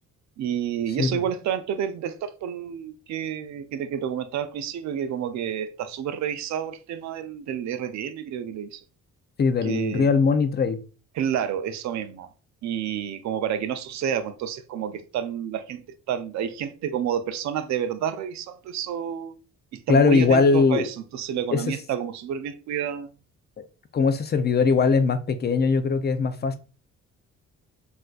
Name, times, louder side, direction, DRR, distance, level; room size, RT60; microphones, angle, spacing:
voice 1, 0.4-8.8 9.6-10.1 11.2-12.3 12.6-19.4 19.7-23.1, right 9 dB, 65° right, 0.5 m, -29 dB
voice 2, 9.4-10.8 19.9-20.9 21.5-21.7 23.6-23.7 23.9-26.6, left 5 dB, 35° left, 0.4 m, -20 dB
4.0 x 2.5 x 2.3 m
cardioid pair, 90°, 30 cm